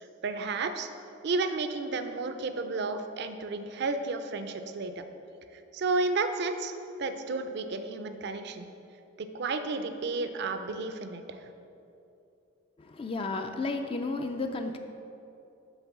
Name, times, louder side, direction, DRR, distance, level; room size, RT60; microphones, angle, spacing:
voice 1, 0.2-0.9 1.2-5.0 5.7-6.7 7.0-8.7 9.2-11.4, right 3 dB, 55° right, 8 dB, 0.5 m, -32 dB
voice 2, 12.8-14.8, left 3 dB, 30° left, 5 dB, 0.3 m, -33 dB
8.0 x 3.8 x 6.0 m, 2.7 s
head